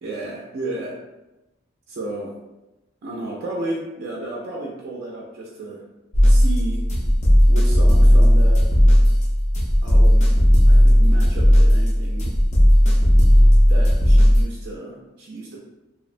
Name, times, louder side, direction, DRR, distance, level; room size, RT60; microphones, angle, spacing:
voice 1, 0.0-1.0 1.9-2.3 3.0-5.8 6.3-6.9 7.5-8.6 9.8-10.3 10.7-12.4 13.7-15.6, right 2 dB, 55° right, -3 dB, 0.4 m, -32 dB
sound 1, 6.1-14.4, equal, 35° left, 0.5 m, -14 dB
2.7 x 2.0 x 2.4 m, 0.99 s
head